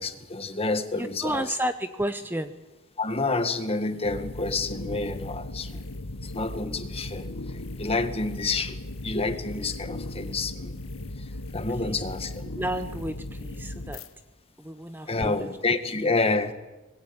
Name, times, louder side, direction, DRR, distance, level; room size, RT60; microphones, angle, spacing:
voice 1, 0.0-1.6 3.0-5.9 6.2-10.8 11.2-12.4 15.1-16.5, left 3 dB, 30° left, 9 dB, 1.8 m, -29 dB
voice 2, 1.0-2.6 11.7-12.0 12.5-14.1 14.6-15.5 16.0-16.1, right 1 dB, 10° right, 10 dB, 0.8 m, -32 dB
sound 1, 4.0-14.1, left 1 dB, 85° left, 1.5 m, -37 dB
25.0 x 20.5 x 8.8 m, 1.1 s
head